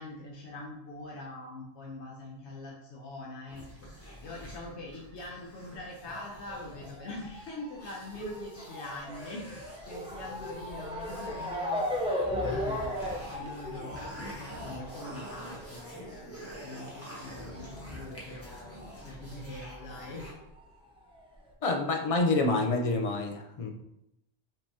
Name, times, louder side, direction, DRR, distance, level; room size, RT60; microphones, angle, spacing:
voice 1, 0.0-3.6 3.9-20.3, left 2 dB, 80° left, -2 dB, 1.1 m, -44 dB
sound 1, 3.5-20.3, left 1 dB, 15° left, 1.1 m, -46 dB
Motor vehicle (road) / Siren, 6.0-19.1 19.3-20.5 21.1-21.2 21.5-21.6, left 1 dB, 5° right, 0.5 m, -37 dB
voice 2, 21.6-23.7, left 3 dB, 45° left, 3 dB, 0.5 m, -27 dB
5.7 x 3.4 x 2.7 m, 0.84 s
omnidirectional pair, 1.1 m